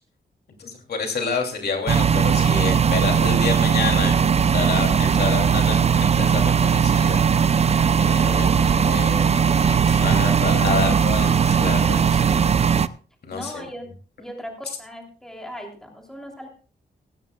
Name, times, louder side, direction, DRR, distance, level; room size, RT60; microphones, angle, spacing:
voice 1, 0.6-12.4 13.2-13.6, left 4 dB, 60° left, 2 dB, 2.9 m, -29 dB
sound 1, 1.9-12.9, right 7 dB, 35° right, 0.5 m, -19 dB
Wind instrument woodwind instrument, 7.6-11.8, left 2 dB, 20° left, 2.8 m, -40 dB
voice 2, 9.4-10.0 13.3-13.9 14.2-16.5, equal, 5° left, 1 dB, 3.2 m, -38 dB
16.5 x 15.5 x 2.4 m, 0.38 s
wide cardioid pair, 140°, 18 cm